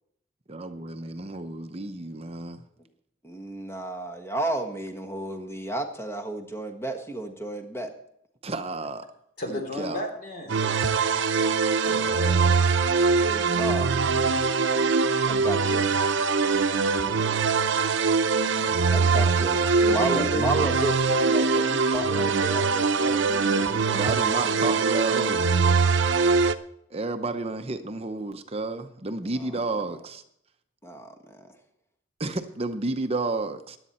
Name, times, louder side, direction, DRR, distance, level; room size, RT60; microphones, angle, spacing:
voice 1, 0.5-2.6 8.4-9.1 9.5-10.0 11.8-12.6 23.9-25.5 26.9-30.2 32.2-33.8, right 3 dB, 30° right, 8 dB, 0.7 m, -31 dB
voice 2, 3.2-7.9 13.2-13.9 15.3-15.8 18.9-24.1 24.3-25.3 25.6-25.8 29.2-29.5 29.9-30.0 30.8-31.5, right 2 dB, 10° left, 4 dB, 1.4 m, -33 dB
voice 3, 9.4-10.6 16.5-17.3 19.8-20.4, left 1 dB, 45° left, 4 dB, 3.1 m, -33 dB
sound 1, 10.5-26.5, right 4 dB, 70° right, 0.7 m, -22 dB
16.0 x 11.0 x 4.3 m, 0.72 s
head